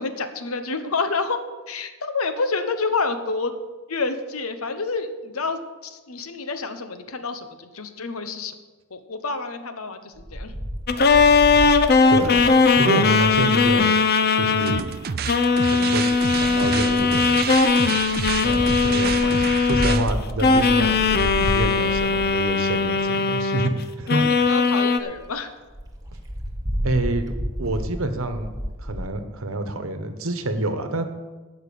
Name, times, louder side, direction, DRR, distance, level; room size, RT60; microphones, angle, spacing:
voice 1, 0.0-1.4 1.7-3.5 3.9-8.5 8.9-10.5 24.1-25.5, left 4 dB, 80° left, 9 dB, 1.1 m, -28 dB
Wind, 10.2-13.8 14.9-15.4 16.1-23.1 23.7-23.8 24.0-24.1 24.4-24.5 24.8-24.9 25.1-25.3 25.7-29.1, equal, 15° right, 1.5 m, -32 dB
sound 1, 10.9-14.8 15.3-20.1 20.4-23.8 24.1-25.0, left 4 dB, 50° left, 0.7 m, -19 dB
voice 2, 12.1-14.0 14.3-14.9 15.7-17.5 18.4-23.7 24.0-24.3 26.8-28.5 28.8-31.0, right 2 dB, 70° right, 8 dB, 1.2 m, -27 dB
sound 2, 14.6-20.1, right 7 dB, 45° right, 0.5 m, -29 dB
12.5 x 5.7 x 8.5 m, 1.3 s
head